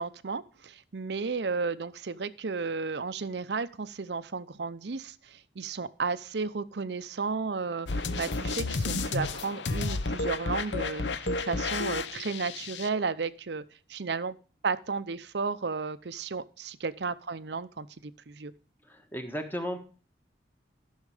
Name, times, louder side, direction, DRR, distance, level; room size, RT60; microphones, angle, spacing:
voice 1, 0.0-13.6 13.9-14.4 14.6-18.5, right 4 dB, 65° right, 15 dB, 0.6 m, -33 dB
sound 1, 7.9-12.9, left 3 dB, 75° left, 0.8 m, -32 dB
voice 2, 18.9-19.8, equal, 10° left, 5 dB, 1.4 m, -35 dB
13.0 x 6.4 x 4.9 m, 0.37 s
head